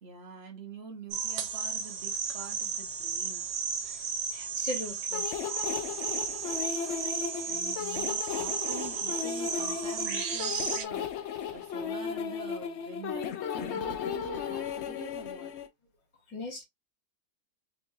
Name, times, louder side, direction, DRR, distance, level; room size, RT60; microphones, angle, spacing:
voice 1, 0.0-3.5 7.4-13.2 13.5-15.5, right 5 dB, 50° right, 0.9 m, -45 dB
sound 1, 1.1-10.9, right 6 dB, 85° right, 1.3 m, -34 dB
voice 2, 4.3-5.4 6.4-6.7 16.3-16.6, left 2 dB, 50° left, 1.8 m, -40 dB
sound 2, 5.1-15.7, left 8 dB, 75° left, 0.6 m, -35 dB
3.5 x 3.0 x 2.6 m
omnidirectional pair, 1.7 m